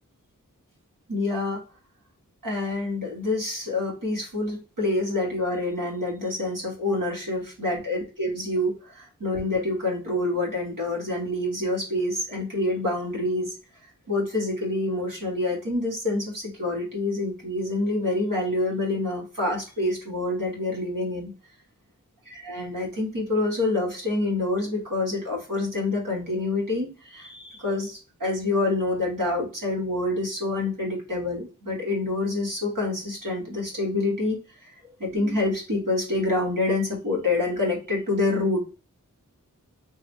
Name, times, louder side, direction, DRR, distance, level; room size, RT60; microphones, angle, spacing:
voice 1, 1.1-1.6 2.4-13.5 14.1-21.3 22.3-34.4 35.0-38.6, left 2 dB, 80° right, -2 dB, 1.6 m, -27 dB
3.6 x 2.4 x 3.2 m, 0.33 s
wide cardioid pair, 50°, 32 cm